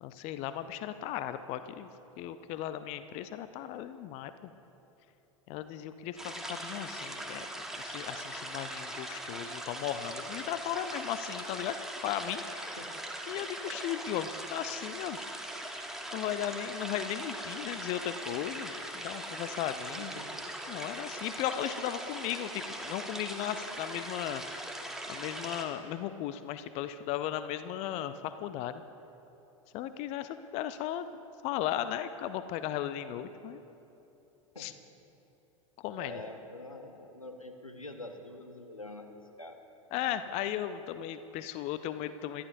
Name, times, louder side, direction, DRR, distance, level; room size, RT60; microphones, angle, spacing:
voice 1, 0.0-1.9 2.2-4.3 5.5-7.5 7.8-11.8 12.0-12.8 13.3-15.3 16.1-20.1 20.7-24.4 25.1-28.8 29.7-31.1 31.4-33.6 34.6-34.7 35.8-36.1 39.9-42.4, left 11 dB, 40° left, 12 dB, 0.5 m, -36 dB
sound 1, 6.2-25.6, right 1 dB, ahead, 1.4 m, -40 dB
voice 2, 20.0-20.4 34.5-34.7 36.0-39.6, left 2 dB, 90° left, 6 dB, 1.0 m, -45 dB
24.5 x 11.0 x 2.6 m, 2.9 s
figure-of-eight pair, 85°, 17 cm